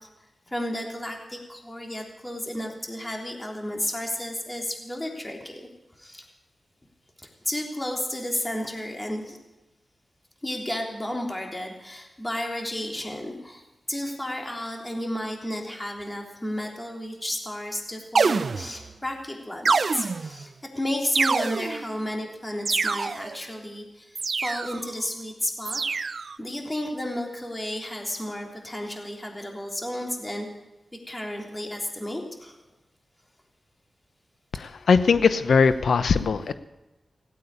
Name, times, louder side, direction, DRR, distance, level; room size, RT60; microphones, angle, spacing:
voice 1, 0.5-5.7 6.0-6.3 7.2-9.4 10.4-25.8 26.4-30.5 31.1-32.6, left 1 dB, 20° left, 1 dB, 3.5 m, -32 dB
sound 1, 18.1-18.9 19.6-20.4 21.1-21.9 22.6-23.4 24.2-24.9 25.7-26.4, right 4 dB, 65° right, 0.5 m, -26 dB
voice 2, 34.6-36.5, left 5 dB, 80° left, 12 dB, 0.8 m, -20 dB
17.0 x 8.6 x 9.7 m, 1.0 s
cardioid pair, 50°, 0 cm